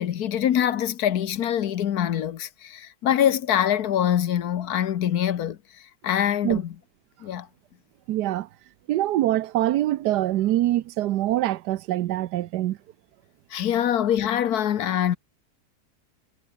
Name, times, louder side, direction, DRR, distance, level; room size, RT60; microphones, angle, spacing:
voice 1, 0.0-5.6 6.0-6.7 7.2-7.5 13.5-15.2, left 10 dB, 70° left, 1.4 m, -24 dB
voice 2, 8.1-8.5 8.9-12.8, right 14 dB, 85° right, 1.3 m, -24 dB
omnidirectional pair, 1.7 m